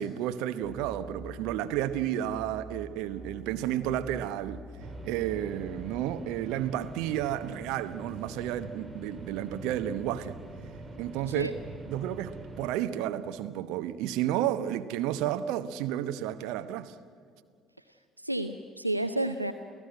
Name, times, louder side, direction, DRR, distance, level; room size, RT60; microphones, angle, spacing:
voice 1, 0.0-4.6 5.0-10.4 11.0-11.5 11.9-16.9, right 11 dB, 60° right, 0.9 m, -32 dB
sound 1, 0.6-6.0, right 1 dB, 35° right, 6.5 m, -46 dB
sound 2, 4.8-12.7, right 2 dB, 20° right, 2.3 m, -44 dB
voice 2, 17.9-19.5, right 1 dB, 90° right, 0.5 m, -31 dB
29.5 x 16.5 x 9.1 m
figure-of-eight pair, 55°, 0 cm